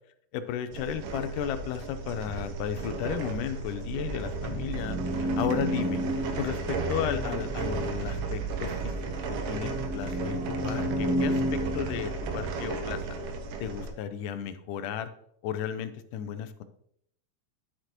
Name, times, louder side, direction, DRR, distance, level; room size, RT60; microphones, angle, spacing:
voice 1, 0.3-8.9 9.3-13.0 13.6-15.1 15.4-16.6, left 9 dB, 85° left, 10 dB, 2.2 m, -34 dB
sound 1, 0.7-13.9, right 4 dB, 85° right, 2.6 m, -35 dB
sound 2, 3.6-12.9, right 1 dB, 60° right, 2.3 m, -33 dB
11.5 x 6.5 x 3.0 m, 0.69 s
omnidirectional pair, 3.7 m